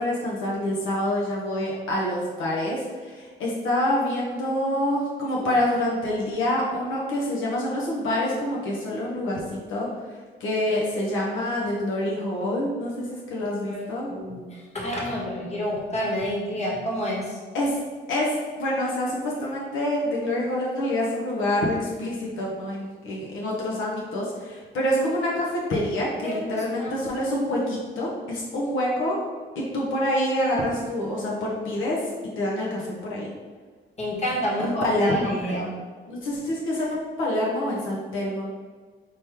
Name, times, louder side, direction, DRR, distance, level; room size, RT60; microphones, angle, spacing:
voice 1, 0.0-14.1 17.5-17.8 18.1-29.2 29.5-32.0 32.4-33.3 34.6-35.7 36.1-38.5, left 1 dB, 80° left, -4 dB, 1.0 m, -26 dB
voice 2, 13.4-13.8 14.1-17.4 26.2-27.0 34.0-35.8, equal, 35° left, -3 dB, 1.4 m, -29 dB
5.1 x 2.9 x 3.5 m, 1.5 s
cardioid pair, 90°, 20 cm